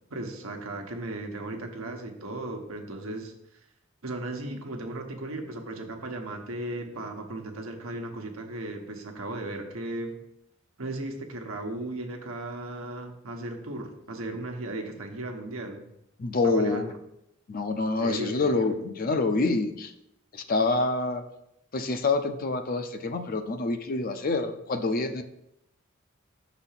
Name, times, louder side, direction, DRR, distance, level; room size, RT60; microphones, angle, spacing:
voice 1, 0.1-3.3 4.0-10.2 10.8-15.8 16.4-16.9 18.0-18.7, right 2 dB, 90° right, 3 dB, 1.1 m, -36 dB
voice 2, 16.2-16.9 17.5-19.9 20.3-21.2 21.7-25.2, left 3 dB, 45° left, 8 dB, 0.5 m, -27 dB
5.7 x 4.1 x 5.7 m, 0.82 s
head